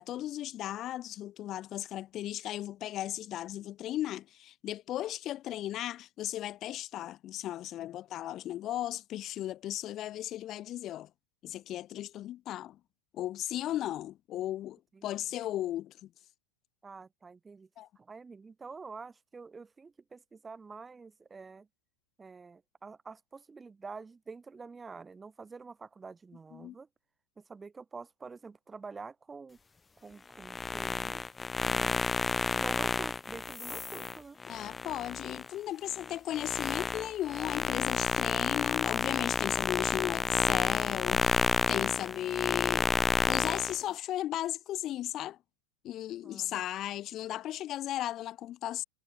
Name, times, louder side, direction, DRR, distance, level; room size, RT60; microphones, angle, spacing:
voice 1, 0.0-11.1 11.4-12.8 13.1-16.1 17.8-17.9 26.5-26.7 34.5-41.4 41.7-42.9 43.3-45.4 45.8-48.8, left 13 dB, 30° left, 1.2 m, -36 dB
voice 2, 16.8-17.7 18.0-21.7 22.2-26.9 27.4-29.6 30.0-31.2 31.6-32.0 32.5-34.4 46.2-46.6, right 4 dB, 15° right, 3.5 m, -47 dB
sound 1, 30.4-35.5 35.9-43.8, left 4 dB, 15° left, 1.1 m, -30 dB
figure-of-eight pair, 90°, 0 cm